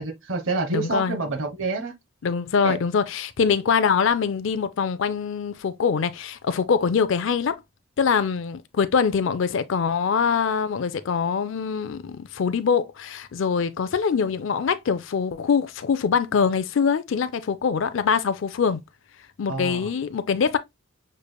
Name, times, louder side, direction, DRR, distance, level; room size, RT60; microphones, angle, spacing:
voice 1, 0.0-1.9 2.6-2.8 19.5-19.8, right 3 dB, 60° right, 1.0 m, -27 dB
voice 2, 0.7-1.3 2.2-7.5 8.0-18.8 19.4-20.6, left 6 dB, 60° left, 0.4 m, -23 dB
6.5 x 3.2 x 2.2 m
head